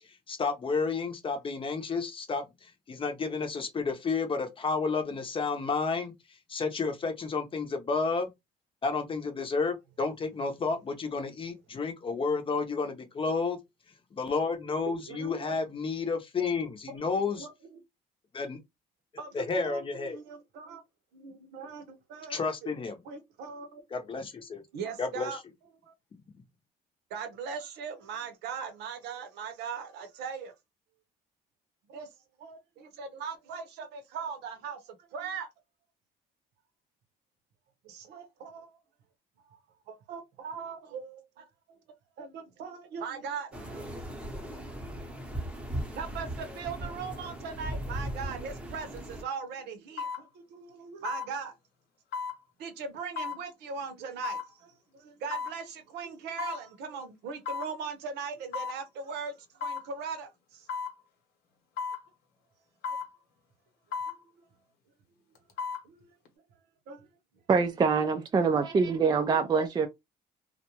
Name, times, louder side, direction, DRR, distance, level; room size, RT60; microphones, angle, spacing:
voice 1, 0.3-6.1 6.5-8.3 8.8-13.6 14.2-17.5 18.3-18.6 19.3-20.2 22.3-23.0 23.9-24.6 25.0-25.3, left 4 dB, 30° left, 0.7 m, -31 dB
voice 2, 14.8-15.6 16.9-17.8 19.2-20.8 21.1-22.7 23.0-24.0 24.7-25.4 25.8-25.9 27.1-30.5 31.9-32.1 32.4-35.5 37.8-38.8 39.5-39.6 39.9-41.8 42.2-44.0 45.9-51.6 52.6-60.7 64.1-64.5 65.8-66.1 66.9-67.1 68.4-68.8, right 6 dB, 80° right, 0.8 m, -40 dB
sound 1, 43.5-49.2, right 1 dB, 5° right, 0.8 m, -38 dB
sound 2, 48.8-49.0 50.0-50.2 51.0-51.3 52.1-52.4 53.2-53.4 54.2-54.5 55.3-55.6 56.4-56.6 57.5-57.7 58.5-58.8 59.6-59.9 60.7-60.9 61.8-62.0 62.8-63.1 63.9-64.2 65.4-65.8 66.3-66.4, left 5 dB, 70° left, 0.9 m, -34 dB
voice 3, 67.5-69.9, right 5 dB, 25° right, 0.4 m, -25 dB
2.5 x 2.2 x 2.9 m
cardioid pair, 110°, 17 cm